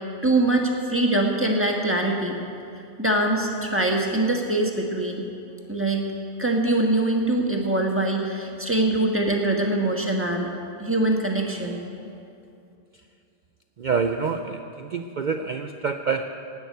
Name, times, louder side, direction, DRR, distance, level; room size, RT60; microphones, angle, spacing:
voice 1, 0.2-2.4 3.0-5.2 5.7-6.1 6.4-10.5 10.8-11.8, right 2 dB, 10° right, 0 dB, 1.3 m, -23 dB
voice 2, 13.8-16.2, right 5 dB, 60° right, 6 dB, 0.5 m, -27 dB
16.0 x 6.3 x 9.4 m, 2.6 s
omnidirectional pair, 1.3 m